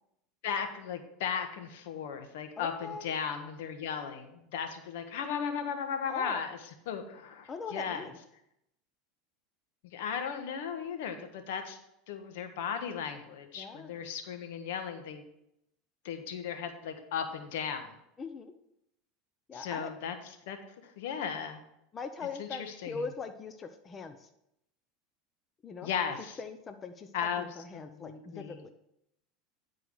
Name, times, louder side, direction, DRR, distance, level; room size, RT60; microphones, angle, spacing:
voice 1, 0.4-6.6 6.9-8.0 9.8-11.8 12.1-15.2 16.0-17.9 19.5-20.1 20.5-20.6 21.0-21.6 22.4-23.0 25.8-26.4 27.1-27.4 27.7-28.6, left 7 dB, 75° left, 7 dB, 1.3 m, -36 dB
voice 2, 2.6-3.1 6.1-6.4 7.5-8.2 13.6-14.0 18.2-18.5 19.5-19.9 21.9-24.3 25.6-25.9 26.4-28.7, left 4 dB, 30° left, 7 dB, 0.8 m, -41 dB
10.0 x 4.6 x 6.3 m, 0.80 s
supercardioid pair, 105°, 0 cm